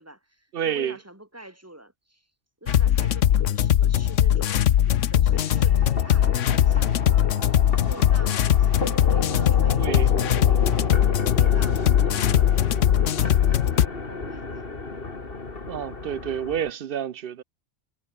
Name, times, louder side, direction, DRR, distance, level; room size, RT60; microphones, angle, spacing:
voice 1, 0.0-2.3 2.6-7.3 7.8-11.0 11.3-15.1, right 1 dB, 10° right, 3.4 m, -45 dB
voice 2, 0.5-1.0 9.8-10.1 15.7-17.4, right 9 dB, 55° right, 0.8 m, -29 dB
sound 1, 2.7-13.9, left 10 dB, 80° left, 1.1 m, -20 dB
sound 2, 5.3-16.7, left 3 dB, 50° left, 2.7 m, -32 dB
omnidirectional pair, 1.3 m